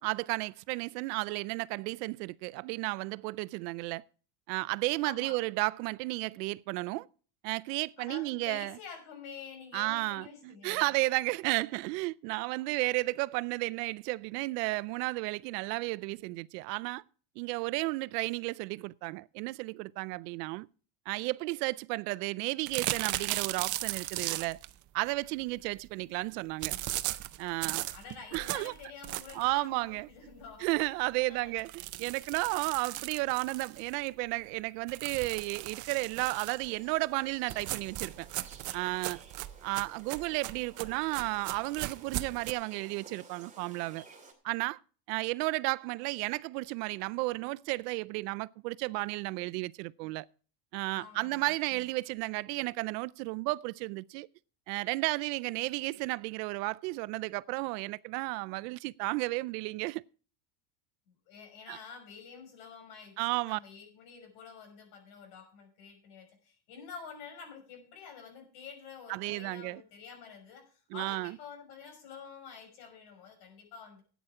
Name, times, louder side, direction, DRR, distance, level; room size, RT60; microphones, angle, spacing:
voice 1, 0.0-4.0 4.5-7.1 7.4-8.8 9.7-17.0 17.4-20.7 21.1-24.6 24.9-26.7 27.4-27.9 28.3-28.7 29.3-30.1 30.6-38.3 38.7-39.2 39.6-44.0 44.4-44.8 45.1-50.3 50.7-54.3 54.7-60.0 61.7-61.8 63.2-63.6 69.1-69.8 70.9-71.4, right 23 dB, 80° right, 0.6 m, -33 dB
voice 2, 5.0-5.4 8.0-11.0 27.9-30.7 31.3-31.6 50.9-51.8 61.1-74.0, left 6 dB, 75° left, 5.9 m, -48 dB
sound 1, 22.7-24.7 26.6-29.5 30.0-30.1 30.4-30.5 30.8-30.9 31.6-34.1 34.9-36.7 37.5-42.5, right 16 dB, 40° right, 0.6 m, -37 dB
sound 2, 36.0-44.3, right 4 dB, 15° right, 2.7 m, -55 dB
13.5 x 9.3 x 4.8 m
cardioid pair, 140°, 48 cm